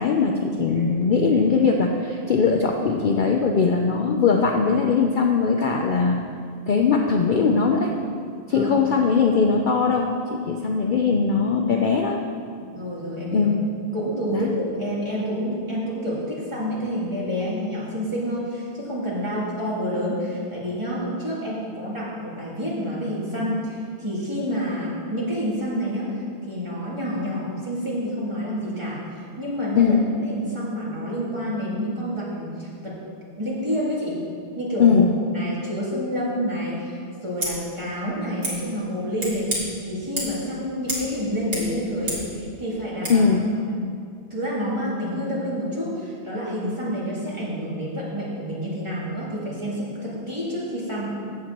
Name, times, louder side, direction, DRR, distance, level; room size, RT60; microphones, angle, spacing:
voice 1, 0.0-6.2 6.7-7.9 8.5-12.2 13.3-13.6 14.3-14.5 29.7-30.0 34.8-35.1 43.1-43.4, left 5 dB, 55° left, 2 dB, 0.6 m, -20 dB
voice 2, 0.6-1.0 8.5-8.8 12.7-13.5 13.9-30.0 30.2-32.9 33.4-34.2 34.5-35.0 35.3-37.0 37.2-43.3 44.3-51.1, equal, 25° right, -9 dB, 2.8 m, -28 dB
Scissors, 37.3-37.5 38.4-38.5 39.2-39.6 40.2-40.4 40.9-41.1 41.3-42.3 43.0-43.2, right 1 dB, 55° right, 2.4 m, -30 dB
15.0 x 7.6 x 3.0 m, 2.3 s
omnidirectional pair, 1.2 m